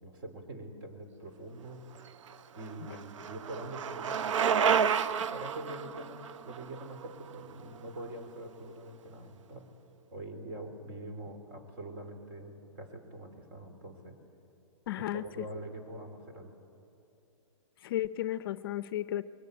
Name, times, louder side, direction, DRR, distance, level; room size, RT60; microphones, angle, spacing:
voice 1, 0.0-1.8 2.5-5.0 5.3-9.7 10.1-14.2 15.0-16.5, right 1 dB, 45° right, 6 dB, 3.4 m, -44 dB
Bicycle, 2.1-8.0, right 7 dB, 70° right, 0.7 m, -31 dB
voice 2, 14.9-15.2 17.8-19.2, left 13 dB, 45° left, 15 dB, 0.5 m, -33 dB
21.5 x 19.0 x 9.5 m, 2.7 s
hypercardioid pair, 155°, 17 cm